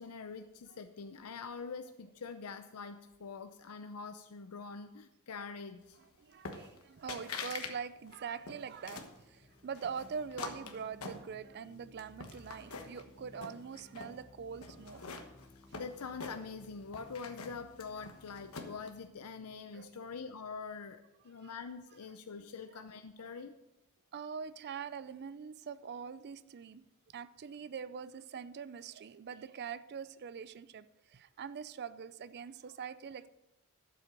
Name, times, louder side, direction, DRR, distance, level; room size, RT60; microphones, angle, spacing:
voice 1, 0.0-6.0 15.8-23.5, left 5 dB, 85° left, 0.6 m, -45 dB
voice 2, 6.0-15.2 19.7-19.9 21.4-21.5 22.7-22.8 24.1-26.8 27.1-33.3, right 6 dB, 50° right, 0.4 m, -44 dB
sound 1, 6.5-6.8 7.1-7.7 8.1-9.2 9.7-11.6 12.0-13.0 13.4-14.1 14.6-16.7 16.9-18.9, left 4 dB, 70° left, 1.3 m, -44 dB
sound 2, 8.0-21.1, left 2 dB, 10° left, 0.7 m, -60 dB
12.0 x 7.7 x 5.2 m
head